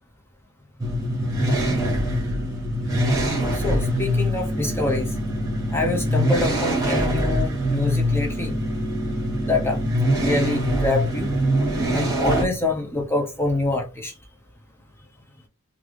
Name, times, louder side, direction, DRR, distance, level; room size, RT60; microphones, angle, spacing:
sound 1, 0.8-12.5, equal, 15° right, 1.3 m, -23 dB
voice 1, 3.5-5.1 5.7-8.6 9.5-9.8 10.1-11.3 11.9-14.1, left 2 dB, 10° left, 0.4 m, -25 dB
3.1 x 2.4 x 3.4 m
head